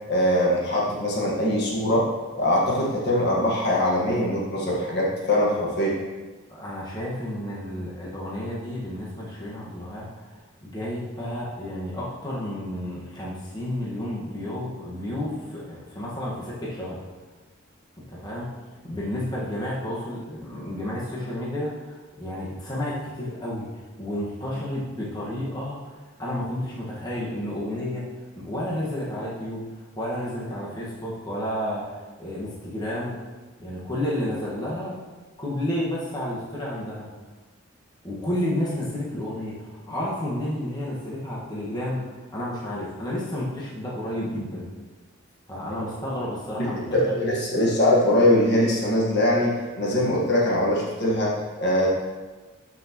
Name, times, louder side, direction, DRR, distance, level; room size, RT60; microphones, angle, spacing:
voice 1, 0.1-2.1 2.3-5.9 46.6-51.9, left 1 dB, 50° left, -3 dB, 1.6 m, -22 dB
voice 2, 6.5-17.0 18.1-18.5 18.8-23.7 24.0-25.8 26.2-28.0 28.3-33.1 33.6-34.9 35.4-37.1 38.0-44.7 45.5-47.2, left 1 dB, 20° left, -6 dB, 1.6 m, -31 dB
13.0 x 6.1 x 3.1 m, 1.3 s
head